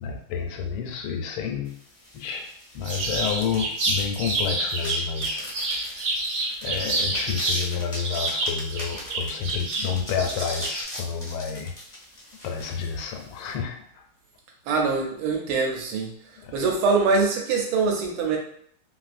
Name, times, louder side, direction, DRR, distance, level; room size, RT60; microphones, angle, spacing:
voice 1, 0.0-1.8 2.1-2.5 2.7-6.0 6.6-11.7 12.4-13.8 16.4-16.6, left 6 dB, 85° left, 3 dB, 1.4 m, -30 dB
sound 1, 1.6-13.5, left 1 dB, 65° left, 0.3 m, -41 dB
sound 2, 2.8-7.6 7.9-10.8, right 2 dB, 65° right, 1.0 m, -28 dB
voice 2, 14.7-16.1 16.5-18.4, right 4 dB, 80° right, 1 dB, 1.5 m, -23 dB
3.5 x 2.5 x 2.5 m, 0.64 s
omnidirectional pair, 2.3 m